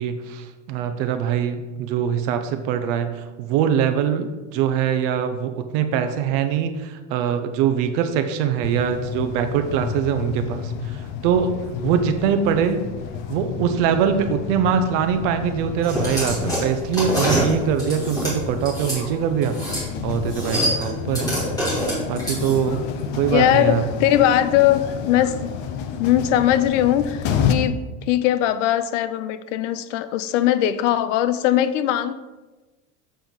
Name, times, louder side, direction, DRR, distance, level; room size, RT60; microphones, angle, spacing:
voice 1, 0.0-12.9 13.3-21.3 22.1-22.8 23.1-23.8, right 8 dB, 45° right, 8 dB, 0.7 m, -23 dB
sound 1, 8.6-27.5, left 7 dB, 30° left, 0.4 m, -30 dB
sound 2, 15.8-19.0 19.4-19.9 20.1-22.8, equal, 10° left, 2.6 m, -25 dB
voice 2, 23.3-25.5 26.0-32.1, left 12 dB, 85° left, 13 dB, 0.7 m, -20 dB
7.6 x 4.6 x 5.2 m, 1.2 s
cardioid pair, 175°, 36 cm